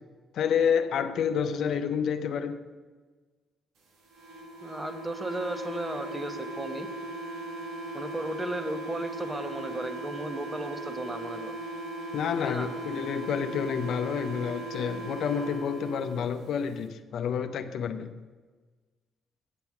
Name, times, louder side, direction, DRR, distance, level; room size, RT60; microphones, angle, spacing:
voice 1, 0.3-2.6 12.1-18.1, left 7 dB, 70° left, 9 dB, 0.6 m, -29 dB
sound 1, 4.1-16.2, right 1 dB, 80° right, 1.7 m, -38 dB
voice 2, 4.6-6.9 7.9-11.5 12.4-12.7, right 1 dB, 20° right, 8 dB, 1.0 m, -35 dB
9.0 x 6.9 x 5.9 m, 1.4 s
cardioid pair, 90°, 0 cm